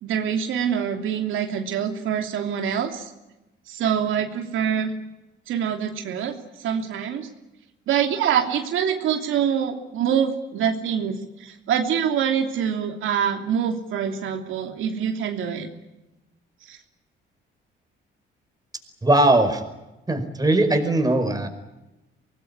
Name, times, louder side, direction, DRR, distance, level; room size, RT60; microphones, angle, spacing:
voice 1, 0.0-3.1 3.7-4.9 5.5-7.3 7.9-15.7 16.6-16.8, right 8 dB, 80° right, 4 dB, 3.0 m, -25 dB
voice 2, 19.0-19.6 20.1-21.5, right 2 dB, 20° right, 6 dB, 5.2 m, -19 dB
24.5 x 19.5 x 9.8 m, 0.98 s
cardioid pair, 90°, 20 cm